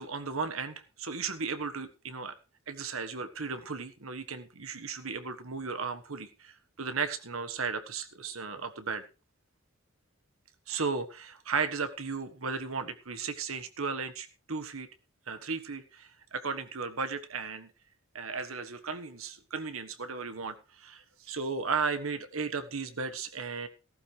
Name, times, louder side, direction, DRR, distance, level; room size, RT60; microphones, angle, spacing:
voice 1, 0.0-2.3 2.7-9.1 10.7-14.9 15.3-17.7 18.1-23.7, right 5 dB, 75° right, 9 dB, 1.4 m, -35 dB
15.0 x 14.0 x 3.3 m, 0.32 s
head